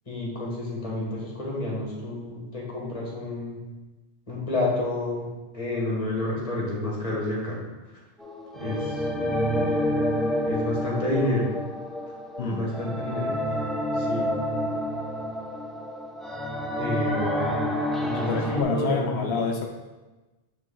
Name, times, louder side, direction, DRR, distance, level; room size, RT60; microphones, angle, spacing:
voice 1, 0.1-3.6 4.3-5.2 5.5-7.6 8.6-9.1 10.4-11.5 12.4-13.4 13.9-14.3 16.8-17.7 18.0-19.4, left 1 dB, 35° left, -4 dB, 1.8 m, -29 dB
sound 1, 8.2-18.6, equal, ahead, 0.5 m, -28 dB
voice 2, 18.1-19.7, left 4 dB, 85° left, 2 dB, 1.0 m, -27 dB
8.9 x 3.4 x 3.8 m, 1.1 s
omnidirectional pair, 1.0 m